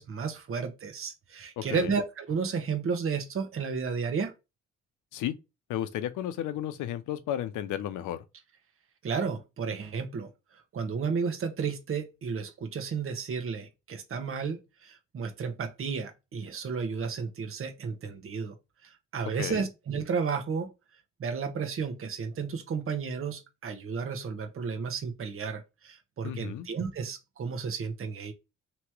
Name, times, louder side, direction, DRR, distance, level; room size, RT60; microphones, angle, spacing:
voice 1, 0.0-4.3 9.0-18.6 18.8-20.7 21.2-28.3, right 5 dB, 45° right, 1.0 m, -33 dB
voice 2, 1.6-1.9 5.1-5.3 5.7-8.2 19.4-19.7 26.2-26.7, left 11 dB, 85° left, 0.7 m, -33 dB
3.1 x 3.0 x 4.6 m
cardioid pair, 90°, 30 cm